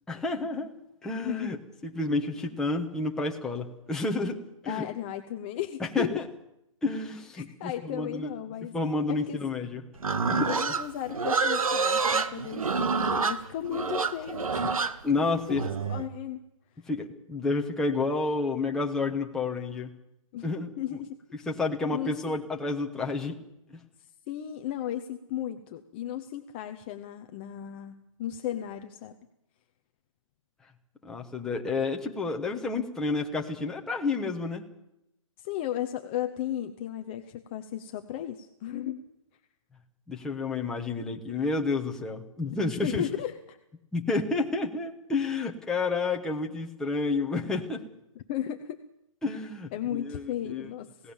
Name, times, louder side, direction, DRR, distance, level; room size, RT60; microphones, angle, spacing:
voice 1, 0.1-0.7 1.0-1.6 1.8-4.8 5.9-6.2 6.8-8.3 8.7-9.8 10.3-10.5 15.0-15.7 16.9-19.9 20.4-20.7 21.5-23.4 31.0-34.6 40.1-43.0 43.9-47.8 49.2-50.7 51.0-51.1, left 3 dB, 5° left, 1 dB, 1.2 m, -30 dB
voice 2, 1.2-1.5 4.7-6.2 7.4-8.7 9.1-9.4 10.5-14.8 15.5-16.4 20.3-20.5 20.8-21.2 21.9-22.4 24.0-29.2 35.4-39.0 42.5-43.6 48.3-48.8 49.7-51.1, left 11 dB, 20° left, 6 dB, 0.7 m, -35 dB
Livestock farm animals working animals, 10.0-16.1, right 4 dB, 85° right, 1.9 m, -27 dB
27.5 x 17.0 x 7.2 m, 0.87 s
hypercardioid pair, 170°, 17 cm